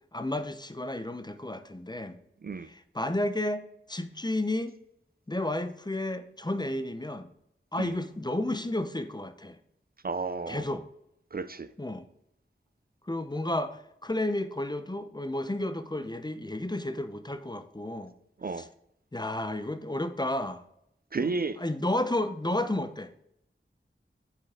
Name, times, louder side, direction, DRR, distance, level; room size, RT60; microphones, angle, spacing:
voice 1, 0.1-2.2 2.6-4.8 5.3-7.3 7.7-9.6 10.5-10.8 11.8-12.0 13.1-18.1 18.6-18.7 19.1-20.6 21.2-23.1, left 1 dB, 20° left, 0.6 m, -32 dB
voice 2, 10.0-10.6 11.3-11.7 18.4-18.7 21.1-21.6, right 4 dB, 45° right, 0.4 m, -32 dB
7.8 x 4.5 x 3.7 m
wide cardioid pair, 45°, 21 cm